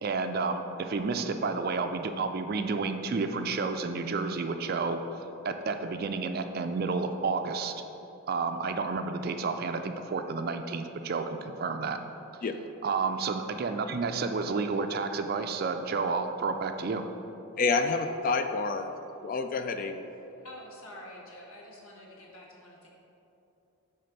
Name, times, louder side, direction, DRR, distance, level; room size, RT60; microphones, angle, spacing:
voice 1, 0.0-5.0 5.4-7.7 8.3-12.0 12.8-17.0, right 4 dB, 45° right, 7 dB, 0.3 m, -30 dB
voice 2, 17.6-18.9 19.2-20.0, left 4 dB, 40° left, 8 dB, 0.3 m, -28 dB
voice 3, 20.4-22.9, left 1 dB, 75° left, -2 dB, 1.3 m, -47 dB
8.5 x 3.4 x 5.8 m, 2.9 s
head